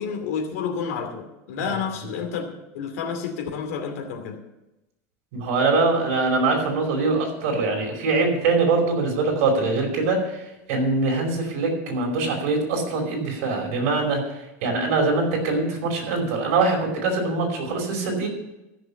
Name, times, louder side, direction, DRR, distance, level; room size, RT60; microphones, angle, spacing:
voice 1, 0.0-4.4, left 6 dB, 85° left, 2 dB, 2.5 m, -30 dB
voice 2, 5.3-10.4 10.7-14.2 14.6-18.3, right 3 dB, 70° right, 1 dB, 5.0 m, -23 dB
14.5 x 6.9 x 7.1 m, 0.95 s
supercardioid pair, 155°, 8 cm